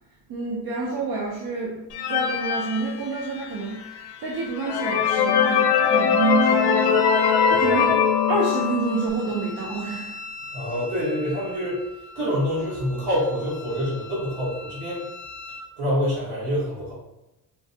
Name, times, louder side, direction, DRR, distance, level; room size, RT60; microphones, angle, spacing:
voice 1, 0.3-8.0 8.3-10.2, right 3 dB, 60° right, -3 dB, 0.6 m, -28 dB
sound 1, 1.9-3.6 4.1-4.2 4.6-9.1, left 7 dB, 75° left, 0.5 m, -21 dB
Wind instrument woodwind instrument, 5.7-15.7, left 3 dB, 30° left, 0.5 m, -40 dB
voice 2, 7.5-7.8 10.5-11.8 12.1-15.0 15.8-16.9, equal, 80° right, -10 dB, 1.3 m, -26 dB
4.4 x 2.1 x 2.7 m, 0.94 s
cardioid pair, 160°, 41 cm